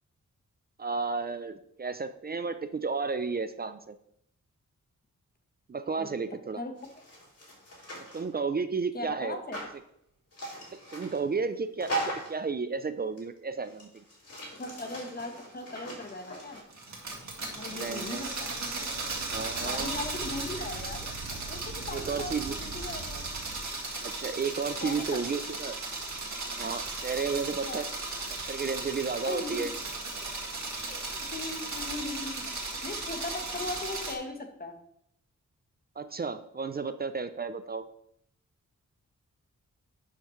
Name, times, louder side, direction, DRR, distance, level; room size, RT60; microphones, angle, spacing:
voice 1, 0.8-3.9 5.7-6.6 8.1-9.4 10.9-13.9 17.7-18.4 19.3-19.9 21.9-22.5 24.0-25.8 26.5-27.9 28.5-29.7 36.0-37.9, right 5 dB, 30° right, 10 dB, 0.4 m, -32 dB
Wood panel board debris rummage increasing, 6.8-8.3 9.5-9.7 10.3-11.2 11.8-12.4 13.2-13.3 13.6-16.6, right 1 dB, 50° left, 3.5 m, -39 dB
voice 2, 8.9-9.6 14.5-16.6 17.5-18.5 19.6-21.1 21.5-21.6 21.9-23.3 24.8-25.2 27.6-27.8 29.2-29.7 30.7-34.8, left 2 dB, 30° left, 4 dB, 1.1 m, -38 dB
sound 1, 16.7-34.2, right 3 dB, 65° right, 2.0 m, -36 dB
sound 2, 18.8-23.7, right 3 dB, 85° right, 1.1 m, -44 dB
11.0 x 5.8 x 3.1 m, 0.73 s
wide cardioid pair, 110°, 30 cm